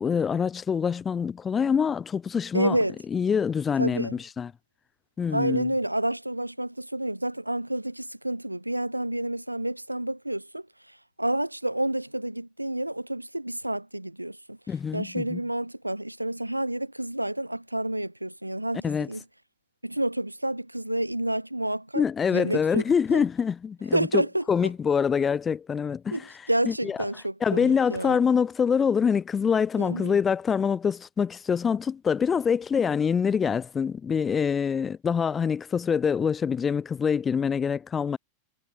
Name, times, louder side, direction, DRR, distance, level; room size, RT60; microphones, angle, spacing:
voice 1, 0.0-2.8 3.1-4.5 5.2-5.7 14.7-15.4 18.8-19.1 21.9-24.2 24.5-26.3 26.7-27.0 27.4-38.2, left 6 dB, 20° left, 1.6 m, -25 dB
voice 2, 2.5-3.0 3.8-4.2 5.3-10.6 11.2-14.6 14.9-19.2 19.8-22.0 22.3-22.8 23.1-23.2 23.9-24.4 26.1-26.2 26.5-28.2 29.8-30.2, right 1 dB, 85° right, 1.8 m, -29 dB
figure-of-eight pair, 90°, 0 cm